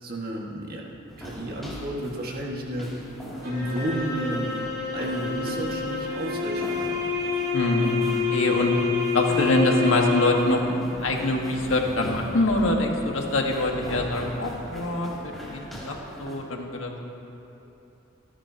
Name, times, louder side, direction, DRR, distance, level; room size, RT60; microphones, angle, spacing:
voice 1, 0.0-0.8 1.2-2.9 3.4-4.6 4.9-7.0, equal, 45° right, -2 dB, 1.8 m, -32 dB
sound 1, 1.1-16.4, equal, ahead, 2.8 m, -40 dB
sound 2, 3.4-10.7, left 5 dB, 70° right, 3.7 m, -28 dB
voice 2, 7.5-8.7 9.1-10.6 11.0-17.0, left 2 dB, 75° left, 1 dB, 1.6 m, -24 dB
27.5 x 11.0 x 2.9 m, 2.9 s
head